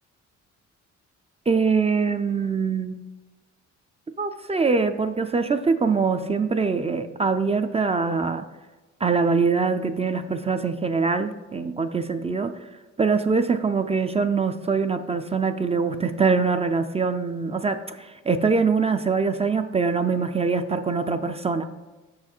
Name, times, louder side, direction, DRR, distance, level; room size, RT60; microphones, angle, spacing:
voice 1, 1.5-3.0 4.2-8.5 9.0-12.5 13.0-21.7, right 4 dB, 20° right, 8 dB, 0.4 m, -23 dB
5.8 x 4.8 x 4.3 m, 1.2 s
cardioid pair, 90°, 30 cm